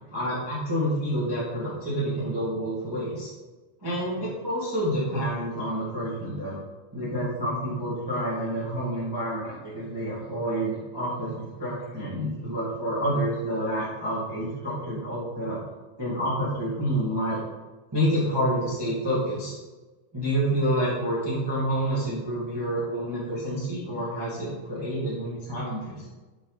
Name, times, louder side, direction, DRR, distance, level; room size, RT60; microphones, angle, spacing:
voice 1, 0.1-3.3 3.8-6.6 6.9-15.6 16.0-17.4 17.9-19.5 20.1-26.0, equal, 10° right, -8 dB, 1.6 m, -28 dB
8.1 x 5.4 x 4.0 m, 1.2 s
omnidirectional pair, 3.6 m